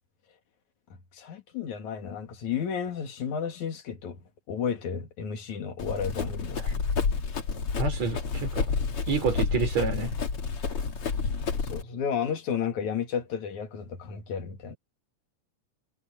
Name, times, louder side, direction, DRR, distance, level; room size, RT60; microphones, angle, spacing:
voice 1, 1.1-4.2 4.5-6.6 11.6-14.8, left 7 dB, 70° left, 3.3 m, -32 dB
Run, 5.8-11.8, left 5 dB, 45° left, 3.0 m, -29 dB
voice 2, 7.8-8.7 9.1-10.1, right 5 dB, 60° right, 5.6 m, -28 dB
omnidirectional pair, 3.5 m